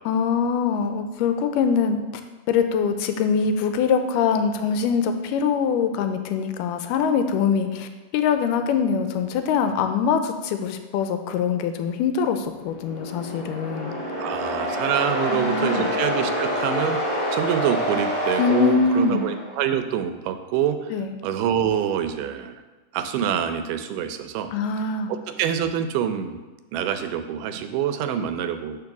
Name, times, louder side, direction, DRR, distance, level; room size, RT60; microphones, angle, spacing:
voice 1, 0.1-2.0 2.5-13.9 15.3-15.9 18.4-19.3 20.9-21.1 24.5-25.1, left 6 dB, 90° left, 7 dB, 2.2 m, -23 dB
sound 1, 12.6-19.6, equal, 15° left, 1.8 m, -27 dB
voice 2, 14.2-20.9 21.2-22.6 22.9-24.5 25.1-26.4 26.7-28.8, right 9 dB, 90° right, 9 dB, 2.2 m, -26 dB
5.2 x 4.7 x 5.8 m, 1.2 s
omnidirectional pair, 3.7 m